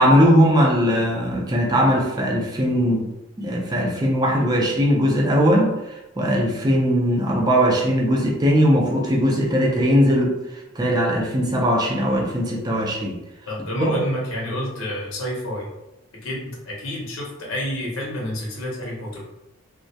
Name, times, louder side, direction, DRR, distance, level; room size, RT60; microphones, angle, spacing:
voice 1, 0.0-3.1 3.4-5.7 6.2-10.3 10.8-13.2 13.8-14.0, equal, 20° right, -2 dB, 0.4 m, -19 dB
voice 2, 13.5-15.7 16.1-19.2, left 1 dB, 85° left, -3 dB, 0.7 m, -29 dB
2.2 x 2.0 x 2.6 m, 0.93 s
head